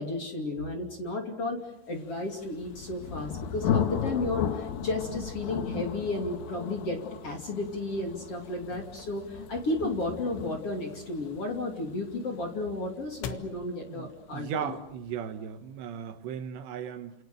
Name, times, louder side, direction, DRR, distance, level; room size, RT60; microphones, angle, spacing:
voice 1, 0.0-1.6 1.9-14.7, left 2 dB, 35° left, 2 dB, 3.1 m, -33 dB
Thunder, 2.3-13.9, left 8 dB, 60° left, 3.0 m, -35 dB
sound 1, 8.2-15.3, left 7 dB, 80° left, 3.8 m, -48 dB
voice 2, 13.9-17.1, right 8 dB, 75° right, 8 dB, 3.4 m, -37 dB
29.5 x 27.5 x 6.8 m, 0.85 s
omnidirectional pair, 5.3 m